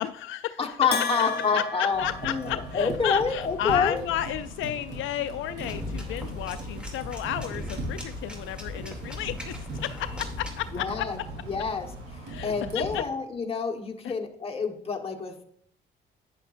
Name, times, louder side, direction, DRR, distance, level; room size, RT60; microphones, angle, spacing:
voice 1, 0.0-0.8 1.5-11.1 12.3-13.0 14.0-14.1, left 12 dB, 80° left, 11 dB, 0.4 m, -32 dB
voice 2, 0.6-4.0 10.7-11.2 11.5-11.9 12.1-15.4, left 5 dB, 30° left, 3 dB, 1.4 m, -28 dB
Bell, 0.9-3.1, left 4 dB, 55° left, 1.0 m, -33 dB
sound 1, 1.9-13.0, right 1 dB, 70° right, 3.3 m, -39 dB
sound 2, 5.6-10.7, left 2 dB, 5° right, 2.6 m, -39 dB
10.5 x 9.5 x 2.6 m, 0.65 s
cardioid pair, 90°, 20 cm